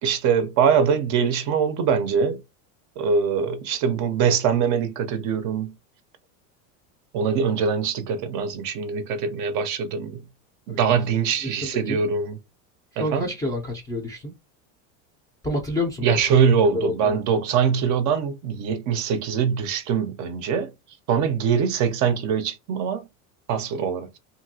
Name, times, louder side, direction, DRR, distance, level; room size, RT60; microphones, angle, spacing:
voice 1, 0.0-2.4 3.0-5.7 7.1-10.2 10.7-12.4 13.0-13.3 16.0-20.7 21.1-23.1 23.5-24.1, right 6 dB, 45° right, 0.5 m, -23 dB
voice 2, 11.4-12.0 13.0-14.3 15.4-17.2, left 1 dB, 10° left, 0.4 m, -29 dB
2.8 x 2.6 x 2.6 m
supercardioid pair, 145°, 42 cm